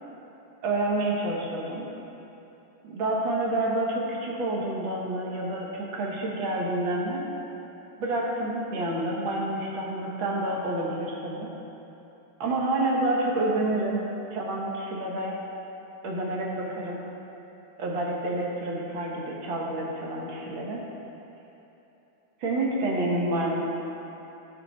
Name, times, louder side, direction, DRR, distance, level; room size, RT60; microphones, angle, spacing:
voice 1, 0.6-1.9 2.8-7.3 8.0-11.5 12.4-15.4 16.0-17.1 17.8-20.8 22.4-23.6, right 2 dB, 75° right, -2 dB, 2.0 m, -28 dB
14.5 x 5.8 x 3.1 m, 3.0 s
omnidirectional pair, 2.2 m